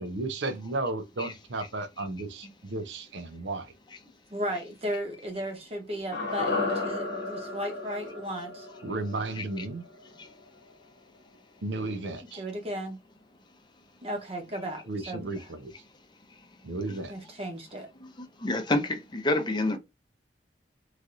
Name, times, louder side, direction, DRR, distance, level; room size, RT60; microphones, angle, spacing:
voice 1, 0.0-3.7 8.8-9.8 11.6-12.4 14.9-15.7 16.6-17.1, right 2 dB, 85° right, 0.6 m, -34 dB
voice 2, 4.3-8.7 12.4-13.0 14.0-15.3 16.9-17.9, equal, 35° right, 0.9 m, -35 dB
sound 1, 6.1-10.4 10.7-10.8, left 3 dB, 65° left, 0.9 m, -33 dB
voice 3, 18.0-19.8, left 2 dB, 25° left, 0.6 m, -30 dB
3.2 x 2.6 x 2.4 m
head